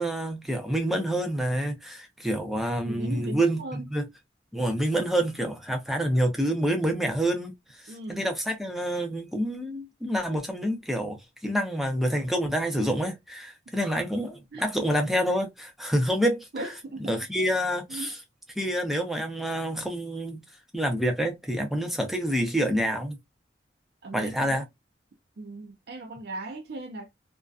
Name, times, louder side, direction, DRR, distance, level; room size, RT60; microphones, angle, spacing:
voice 1, 0.0-4.1 4.5-16.7 17.0-18.2 18.6-20.4 20.7-23.2 24.1-24.6, equal, ahead, 0.5 m, -27 dB
voice 2, 2.8-3.8 7.9-8.3 14.5-14.7 16.5-17.2 17.9-18.1 24.0-24.5 25.4-27.1, right 2 dB, 55° right, 0.5 m, -38 dB
2.5 x 2.2 x 2.3 m
head